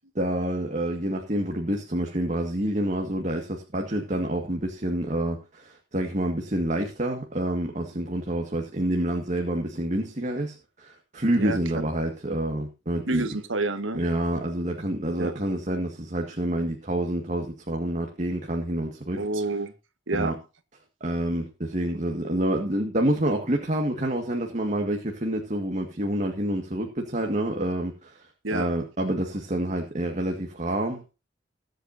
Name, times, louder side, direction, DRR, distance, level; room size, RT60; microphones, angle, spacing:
voice 1, 0.2-13.3 13.9-19.2 20.1-20.4 21.0-31.0, right 1 dB, 40° right, 1.9 m, -28 dB
voice 2, 13.1-14.0 15.2-15.3 19.2-19.7 20.1-20.3 28.4-28.7, right 2 dB, 90° right, 1.6 m, -28 dB
22.0 x 8.0 x 2.8 m
head